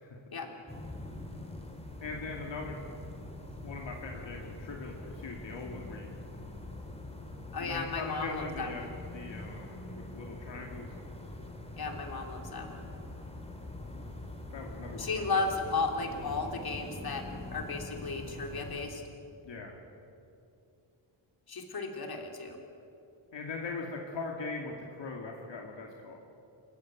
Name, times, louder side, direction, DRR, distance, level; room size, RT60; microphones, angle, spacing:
sound 1, 0.7-18.9, left 1 dB, 15° left, 3.0 m, -44 dB
voice 1, 2.0-2.8 3.6-6.1 7.6-8.8 9.1-11.0 14.5-15.4 19.4-19.8 23.3-26.2, left 3 dB, 70° left, 0 dB, 2.5 m, -40 dB
voice 2, 7.5-8.9 11.8-12.9 14.9-17.2 17.5-19.0 21.5-22.6, left 3 dB, 50° left, 3 dB, 3.2 m, -34 dB
27.0 x 15.0 x 8.9 m, 2.6 s
wide cardioid pair, 120°, 46 cm